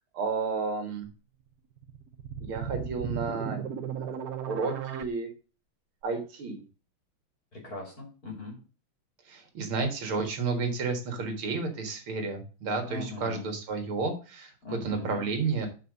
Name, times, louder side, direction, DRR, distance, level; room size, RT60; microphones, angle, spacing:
voice 1, 0.1-1.1 2.4-3.6 4.0-4.2 4.5-5.3 6.0-6.6 9.3-15.7, right 4 dB, 75° right, 5 dB, 2.5 m, -31 dB
sound 1, 1.8-5.0, right 8 dB, 60° right, 1.1 m, -35 dB
voice 2, 7.5-8.6 12.9-13.5 14.6-15.3, left 3 dB, 45° left, 0 dB, 3.3 m, -39 dB
5.7 x 5.7 x 6.4 m, 0.35 s
omnidirectional pair, 2.3 m